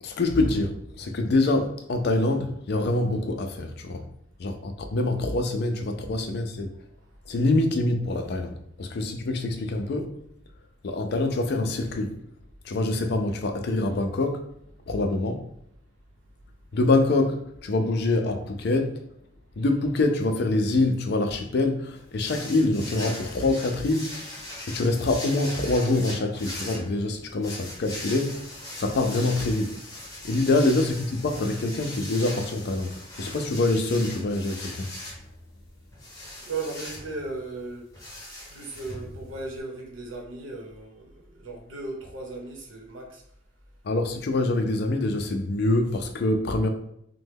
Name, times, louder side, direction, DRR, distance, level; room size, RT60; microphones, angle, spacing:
voice 1, 0.0-4.1 4.4-6.7 7.3-10.1 10.8-12.2 12.6-14.4 14.9-15.4 16.7-19.0 19.6-24.2 24.7-28.5 28.8-29.8 30.2-34.9 43.8-46.7, left 2 dB, 55° left, 0.4 m, -25 dB
sound 1, 22.2-39.6, left 1 dB, 20° left, 0.8 m, -40 dB
voice 2, 36.4-43.2, right 3 dB, 80° right, 0.9 m, -37 dB
3.1 x 2.1 x 3.4 m
head